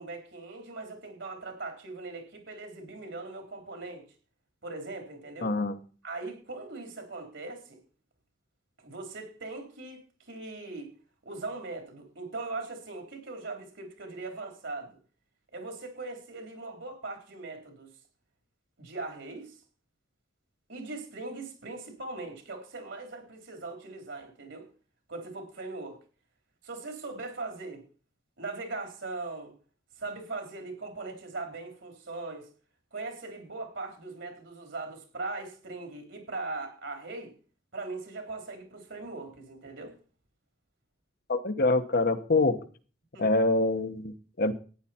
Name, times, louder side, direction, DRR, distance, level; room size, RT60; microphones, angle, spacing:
voice 1, 0.0-4.0 4.6-5.5 6.0-7.8 8.8-10.0 10.3-10.9 11.3-15.0 15.5-17.9 18.8-19.5 20.7-24.7 25.1-26.0 26.6-27.8 28.4-29.5 30.0-32.5 32.9-37.3 37.7-39.9 43.1-43.2, right 3 dB, 65° right, 4 dB, 3.6 m, -40 dB
voice 2, 5.4-5.7 41.3-42.6 43.2-44.5, left 2 dB, 50° left, 9 dB, 1.0 m, -25 dB
14.5 x 9.8 x 4.3 m, 0.39 s
head